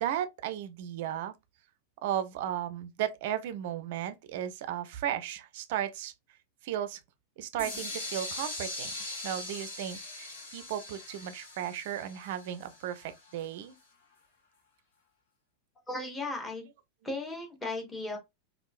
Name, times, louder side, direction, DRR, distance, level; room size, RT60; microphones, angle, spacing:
voice 1, 0.0-1.3 2.0-6.1 6.6-7.0 7.4-8.9 9.2-13.8, right 11 dB, 50° right, 0.4 m, -35 dB
sound 1, 7.6-13.4, left 2 dB, 60° left, 1.7 m, -41 dB
voice 2, 15.9-16.6 17.0-18.2, left 2 dB, 10° left, 1.2 m, -36 dB
3.5 x 2.4 x 2.5 m
figure-of-eight pair, 90°, 0 cm